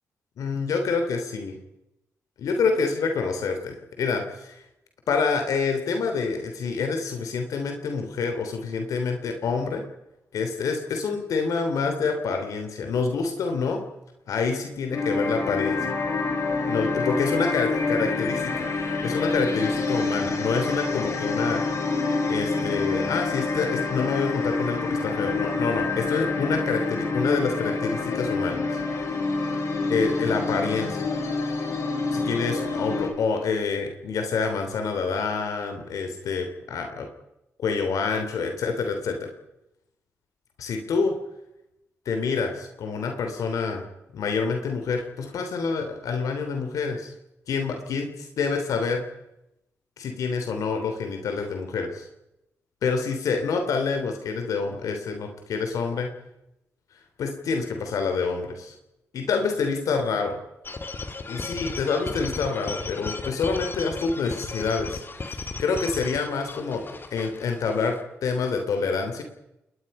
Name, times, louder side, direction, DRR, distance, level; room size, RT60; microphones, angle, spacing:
voice 1, 0.4-1.5 2.4-4.6 5.1-9.8 10.3-13.8 14.3-15.9 16.6-18.7 19.0-21.6 22.3-28.6 29.9-31.0 32.1-37.1 37.6-39.3 40.6-41.1 42.0-43.8 44.1-47.1 47.5-49.0 50.0-52.1 52.8-56.1 57.2-58.7 59.1-60.3 61.3-65.0 65.2-66.8 67.1-69.2, left 5 dB, 80° left, 5 dB, 3.2 m, -27 dB
sound 1, 14.9-33.1, left 3 dB, 60° left, 4.8 m, -27 dB
sound 2, 60.6-68.0, left 3 dB, 40° left, 2.6 m, -35 dB
30.0 x 20.5 x 5.5 m, 0.88 s
cardioid pair, 65°, 6 cm